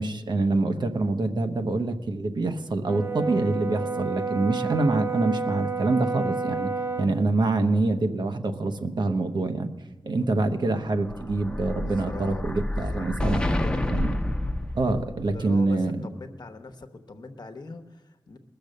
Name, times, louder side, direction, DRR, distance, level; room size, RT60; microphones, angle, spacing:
voice 1, 0.0-6.7 7.0-9.7 10.0-13.4 13.9-14.2 14.8-16.0, right 2 dB, 70° right, 6 dB, 1.0 m, -25 dB
Brass instrument, 2.9-7.1, right 4 dB, 30° right, 0.5 m, -30 dB
Explosion, 10.8-15.4, left 1 dB, 15° left, 0.8 m, -29 dB
voice 2, 11.8-13.9 15.2-18.4, left 3 dB, 60° left, 6 dB, 1.0 m, -42 dB
20.0 x 6.9 x 6.6 m, 1.1 s
wide cardioid pair, 80°, 8 cm